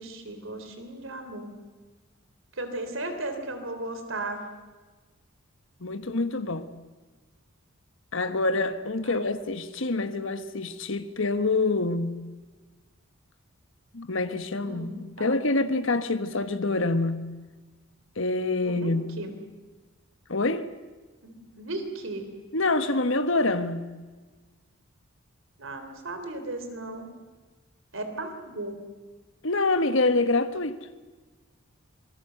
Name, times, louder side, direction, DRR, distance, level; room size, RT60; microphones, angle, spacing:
voice 1, 0.0-1.5 2.5-4.5 9.0-9.3 14.7-15.4 18.6-18.9 19.2-19.4 21.2-22.3 25.6-27.1 27.9-28.8, right 2 dB, 70° right, 3.4 m, -36 dB
voice 2, 5.8-6.7 8.1-12.2 13.9-17.3 18.2-19.1 20.3-20.8 22.5-23.9 29.4-30.9, left 2 dB, 65° left, 1.3 m, -26 dB
27.0 x 20.0 x 7.9 m
head